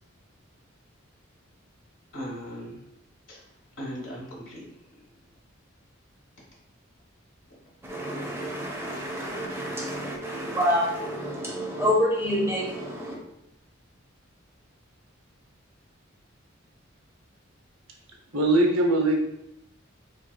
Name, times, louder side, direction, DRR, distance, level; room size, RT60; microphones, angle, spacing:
voice 1, 2.1-2.8 3.3-3.4 3.8-5.0, equal, 70° left, -4 dB, 1.2 m, -38 dB
voice 2, 7.8-13.2, equal, 15° right, -3 dB, 0.6 m, -28 dB
voice 3, 18.3-19.2, right 1 dB, 90° right, 2 dB, 0.6 m, -21 dB
2.8 x 2.8 x 2.2 m, 0.81 s
head